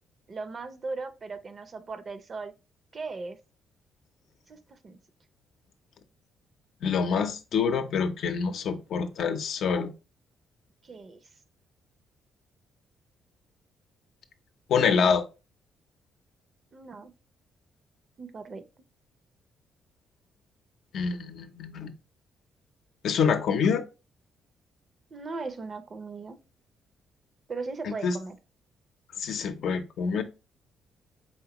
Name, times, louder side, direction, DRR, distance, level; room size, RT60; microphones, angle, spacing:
voice 1, 0.3-2.5 2.9-3.4 4.5-5.0 10.8-11.2 16.7-17.1 18.2-18.6 25.1-26.4 27.5-28.4, right 3 dB, 40° right, 0.6 m, -38 dB
voice 2, 6.8-9.9 14.7-15.2 20.9-21.9 23.0-23.8 27.8-28.2 29.2-30.2, left 6 dB, 70° left, 0.6 m, -26 dB
4.3 x 3.5 x 2.9 m
cardioid pair, 90°, 0 cm